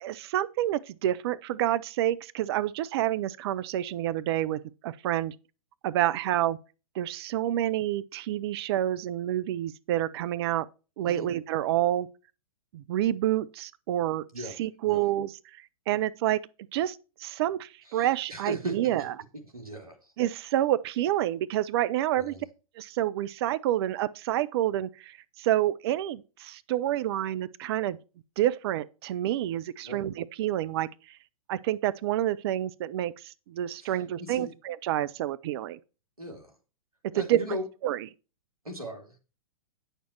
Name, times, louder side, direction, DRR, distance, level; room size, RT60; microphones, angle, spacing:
voice 1, 0.0-5.3 5.8-6.6 7.0-10.7 11.0-12.1 12.7-14.2 14.6-15.3 15.9-16.4 16.7-19.1 20.2-22.3 22.8-28.0 28.4-31.2 31.5-35.8 37.2-37.4 37.8-38.0, right 13 dB, 45° right, 0.6 m, -28 dB
voice 2, 14.3-15.0 17.9-18.9 19.3-20.1 22.1-22.4 29.8-30.0 33.8-34.5 36.2-36.5 37.1-37.6 38.6-39.2, equal, 90° right, 3.0 m, -39 dB
9.3 x 6.7 x 4.5 m
figure-of-eight pair, 110°, 18 cm